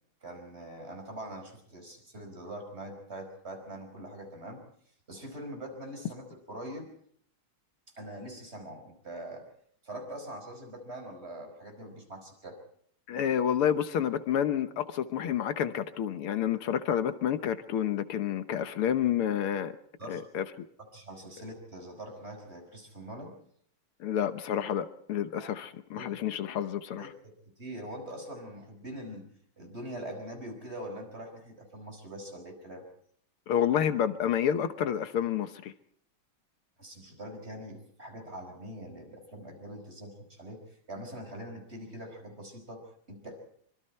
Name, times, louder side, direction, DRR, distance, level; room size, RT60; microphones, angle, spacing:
voice 1, 0.2-4.6 5.1-6.9 8.0-9.5 9.8-12.6 20.0-20.2 20.9-23.4 25.4-25.5 25.9-26.1 27.0-29.3 29.6-32.8 36.8-43.4, right 1 dB, 30° right, 5.5 m, -43 dB
voice 2, 13.1-19.7 20.1-20.7 24.0-27.1 33.5-35.7, left 9 dB, 80° left, 2.0 m, -29 dB
25.0 x 24.0 x 4.4 m
omnidirectional pair, 2.4 m